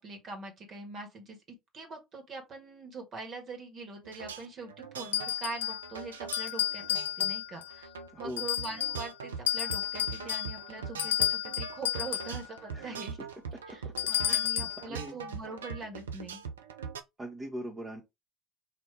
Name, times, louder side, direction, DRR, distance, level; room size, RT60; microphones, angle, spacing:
voice 1, 0.0-1.4 1.7-7.9 8.2-13.2 13.7-16.4, right 3 dB, 45° right, 1.7 m, -43 dB
sound 1, 4.0-17.0, right 6 dB, 80° right, 0.5 m, -42 dB
sound 2, 5.1-5.9 6.3-7.7 8.4-9.1 9.5-12.4 14.0-14.8, left 11 dB, 80° left, 0.4 m, -31 dB
voice 2, 8.1-8.5 12.7-13.0 14.2-15.1 17.2-18.0, right 1 dB, 25° right, 1.0 m, -41 dB
4.4 x 2.7 x 3.3 m
figure-of-eight pair, 60°, 0 cm